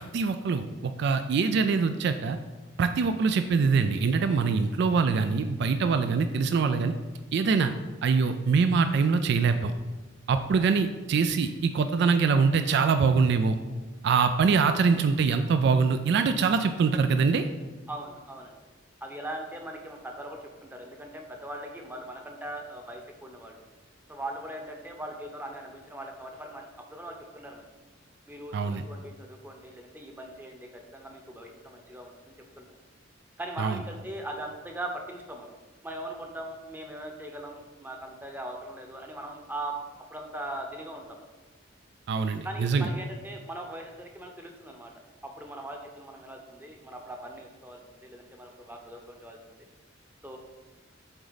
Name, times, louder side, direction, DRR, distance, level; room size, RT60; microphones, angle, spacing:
voice 1, 0.0-2.4 2.8-6.9 7.3-7.7 8.0-9.7 10.3-13.6 14.0-17.5 28.5-28.9 33.6-33.8 42.1-42.9, right 5 dB, 60° right, 9 dB, 0.3 m, -24 dB
voice 2, 17.9-18.6 19.0-23.6 24.1-27.7 28.3-32.6 33.4-35.5 35.8-39.7 40.1-41.3 42.4-44.9 45.2-49.6 50.2-50.4, right 1 dB, 10° right, 2 dB, 0.8 m, -40 dB
7.9 x 3.9 x 4.0 m, 1.3 s
head